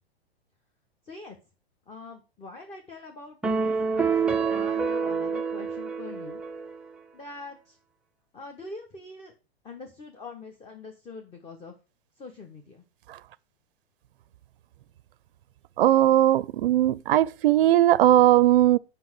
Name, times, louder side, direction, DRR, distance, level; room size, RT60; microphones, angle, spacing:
voice 1, 1.0-1.4 1.9-6.4 7.1-7.8 8.3-9.3 9.6-11.7 12.2-12.8, left 3 dB, 20° left, 1.3 m, -44 dB
sound 1, 3.4-6.9, right 5 dB, 5° right, 0.4 m, -27 dB
voice 2, 15.8-18.8, right 13 dB, 60° right, 0.5 m, -19 dB
7.8 x 5.6 x 6.0 m
figure-of-eight pair, 105°, 32 cm